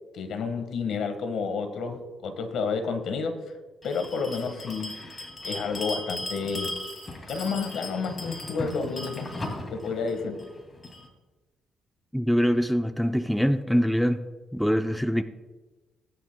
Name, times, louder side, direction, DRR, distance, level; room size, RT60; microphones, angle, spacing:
voice 1, 0.1-3.4 3.8-5.0 5.4-6.7 7.3-9.3 9.7-10.4, left 5 dB, 75° left, 7 dB, 1.5 m, -30 dB
Bell, 3.8-11.1, left 2 dB, 30° left, 2.5 m, -37 dB
voice 2, 12.1-14.2 14.5-15.2, equal, ahead, 8 dB, 0.6 m, -24 dB
18.5 x 10.5 x 2.3 m, 1.2 s
cardioid pair, 90°, 0 cm